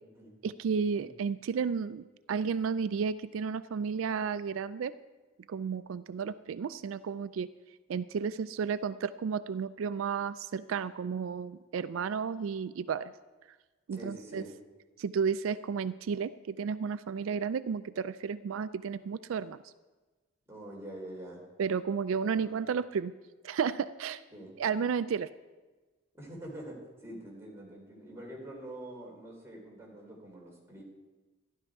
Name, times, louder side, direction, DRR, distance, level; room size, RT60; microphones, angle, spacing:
voice 1, 0.4-4.9 5.5-7.5 7.9-13.1 13.9-14.4 15.0-19.6 21.6-23.1 23.4-24.2 24.6-25.3, right 6 dB, 85° right, 15 dB, 0.4 m, -32 dB
voice 2, 13.9-14.5 20.5-21.5 22.3-22.6 24.3-24.5 26.1-30.8, right 1 dB, 15° right, -3 dB, 3.3 m, -45 dB
12.5 x 11.5 x 4.8 m, 1.2 s
head